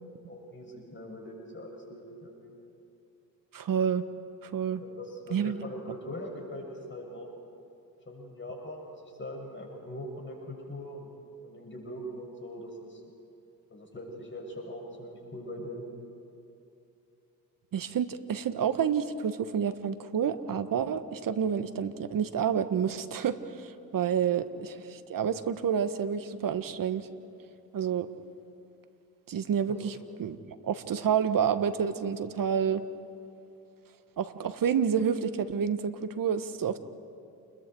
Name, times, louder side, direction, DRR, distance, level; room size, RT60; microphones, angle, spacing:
voice 1, 0.3-2.6 4.8-7.3 8.1-11.1 11.4-13.0 13.7-15.8 29.7-29.8, equal, 25° left, 0 dB, 7.2 m, -41 dB
voice 2, 3.5-4.0 4.4-4.8 5.3-5.5 17.7-27.1 27.7-28.1 29.3-29.9 30.2-30.4 30.6-32.8 34.2-36.8, right 8 dB, 40° right, 11 dB, 1.4 m, -29 dB
29.0 x 22.0 x 4.7 m, 2.7 s
hypercardioid pair, 65°, 49 cm